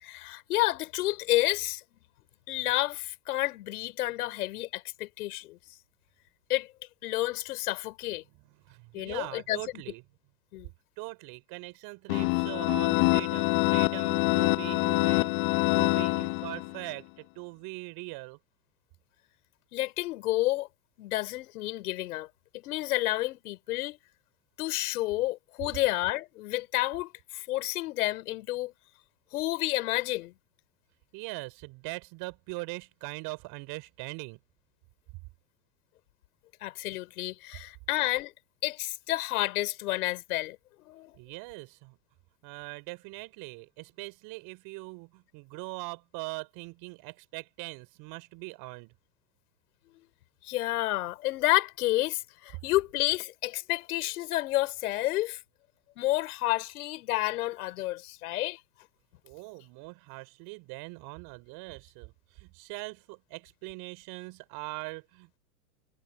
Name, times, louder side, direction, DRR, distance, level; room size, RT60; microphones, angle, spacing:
voice 1, 0.0-1.8 2.5-5.6 6.5-6.7 7.0-8.2 8.9-9.6 10.5-10.7 19.7-20.7 21.0-22.3 22.5-24.0 24.6-28.7 29.3-30.3 36.6-38.3 38.6-40.6 40.8-41.1 50.4-55.4 56.0-58.6, left 17 dB, 65° left, 4.9 m, -30 dB
voice 2, 8.6-10.0 11.0-18.4 31.1-34.4 41.2-42.0 42.4-48.9 59.2-65.4, right 26 dB, 50° right, 3.6 m, -41 dB
sound 1, 12.1-16.8, left 29 dB, 45° left, 0.6 m, -25 dB
hypercardioid pair, 105°, 47 cm